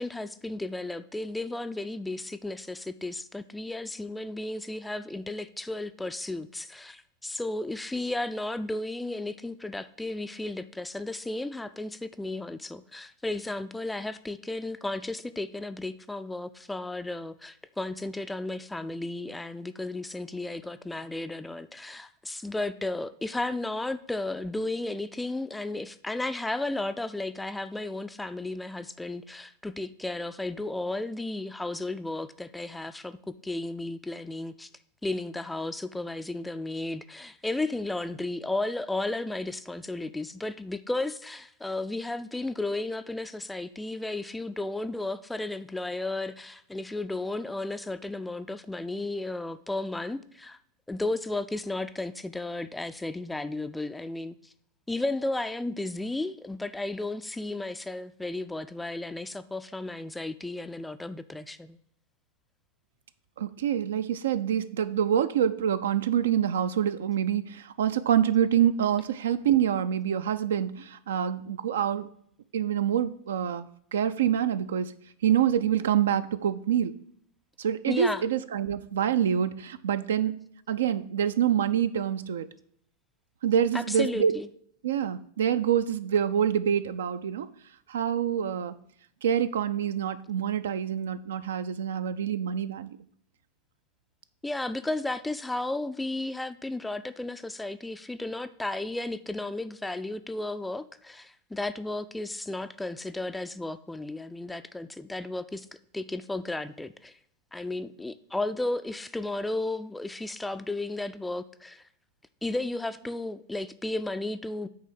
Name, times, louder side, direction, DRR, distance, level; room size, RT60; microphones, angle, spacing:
voice 1, 0.0-34.7 35.0-50.6 50.9-54.3 54.9-61.8 77.9-78.2 83.7-84.5 94.4-105.7 105.9-107.2 107.5-111.8 112.4-114.7, left 2 dB, 5° left, 0.3 m, -34 dB
voice 2, 63.4-72.1 72.5-74.9 75.2-76.9 77.6-82.5 83.4-84.3 84.8-87.5 87.9-88.7 89.2-92.9, right 9 dB, 60° right, 0.4 m, -26 dB
8.5 x 3.4 x 6.5 m
figure-of-eight pair, 90°, 0 cm